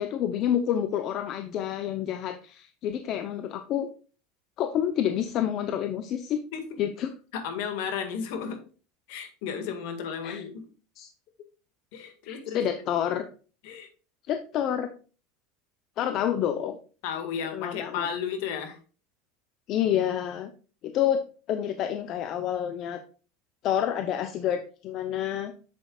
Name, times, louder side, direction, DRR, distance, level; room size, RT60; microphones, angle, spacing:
voice 1, 0.0-3.9 4.6-6.4 6.8-7.1 10.2-10.4 11.0-11.1 12.2-13.2 14.3-14.9 16.0-16.8 17.5-18.1 19.7-20.5 20.8-21.2 21.5-23.0 23.6-25.5, left 10 dB, 50° left, 8 dB, 0.7 m, -28 dB
voice 2, 7.3-8.6 9.1-10.6 11.9-12.6 13.6-13.9 17.0-18.8, left 7 dB, 70° left, 6 dB, 1.8 m, -33 dB
7.7 x 7.4 x 2.4 m, 0.37 s
supercardioid pair, 105°, 0 cm